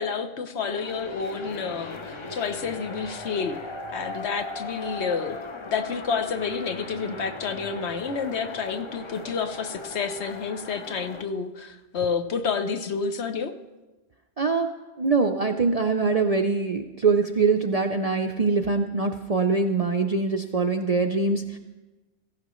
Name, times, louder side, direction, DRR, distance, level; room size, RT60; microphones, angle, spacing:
voice 1, 0.0-3.6 3.9-5.4 5.7-13.5, left 5 dB, 65° left, 8 dB, 1.1 m, -29 dB
sound 1, 0.6-11.2, left 2 dB, 30° left, 0.7 m, -38 dB
voice 2, 14.4-14.7 15.0-21.6, right 4 dB, 45° right, 5 dB, 0.5 m, -23 dB
16.5 x 15.0 x 3.1 m, 1.2 s
omnidirectional pair, 1.3 m